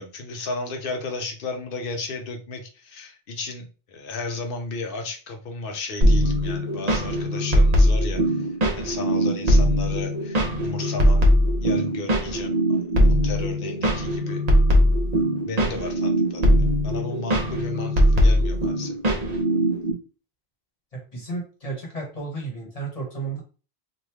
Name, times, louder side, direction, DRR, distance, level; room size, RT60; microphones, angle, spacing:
voice 1, 0.0-8.5 8.7-11.3 11.6-12.5 13.1-14.4 15.4-16.5 16.8-19.0, left 3 dB, 65° left, 4 dB, 0.9 m, -34 dB
sound 1, 6.0-19.9, equal, 40° right, 0.9 m, -20 dB
voice 2, 20.9-23.4, right 3 dB, 40° left, -1 dB, 1.2 m, -33 dB
2.9 x 2.5 x 3.4 m, 0.35 s
omnidirectional pair, 1.0 m